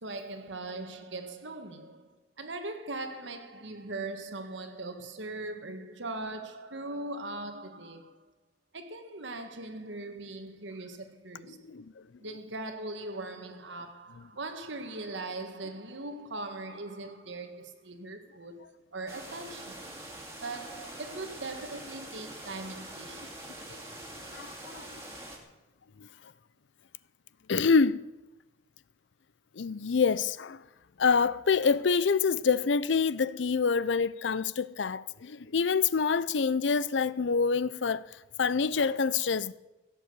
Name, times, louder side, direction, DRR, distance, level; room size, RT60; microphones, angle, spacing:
voice 1, 0.0-8.2 8.7-11.7 12.2-19.9 20.4-23.4, right 2 dB, 90° right, 1.7 m, -40 dB
sound 1, 19.1-25.4, right 1 dB, 15° right, 2.4 m, -44 dB
voice 2, 24.3-25.0 26.0-26.1 27.5-28.0 29.6-30.6 31.0-38.0 38.4-39.5, left 5 dB, 85° left, 0.5 m, -26 dB
17.0 x 7.7 x 8.1 m
head